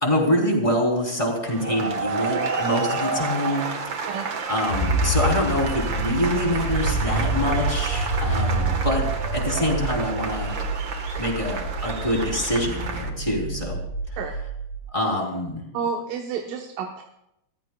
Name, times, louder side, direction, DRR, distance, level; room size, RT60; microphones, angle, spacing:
voice 1, 0.0-3.7 4.5-9.1 9.3-10.6 11.2-13.8 14.9-15.6, left 1 dB, 10° left, -1 dB, 3.4 m, -25 dB
sound 1, 1.5-13.1, right 4 dB, 50° right, 1.4 m, -30 dB
sound 2, 4.7-14.8, right 2 dB, 70° left, 5.2 m, -27 dB
voice 2, 15.7-17.0, right 6 dB, 70° right, 2 dB, 2.8 m, -30 dB
29.0 x 15.0 x 2.4 m, 0.82 s
omnidirectional pair, 4.2 m